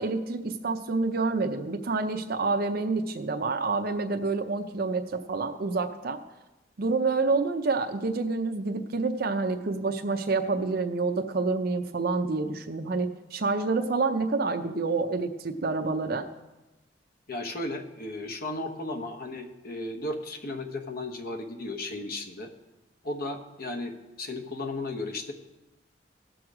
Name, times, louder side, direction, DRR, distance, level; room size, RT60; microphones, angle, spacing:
voice 1, 0.0-6.2 6.8-16.3, right 3 dB, 55° right, 5 dB, 0.6 m, -28 dB
voice 2, 17.3-22.5 23.0-25.3, left 2 dB, 55° left, 6 dB, 1.1 m, -35 dB
17.0 x 6.3 x 4.9 m, 1.1 s
head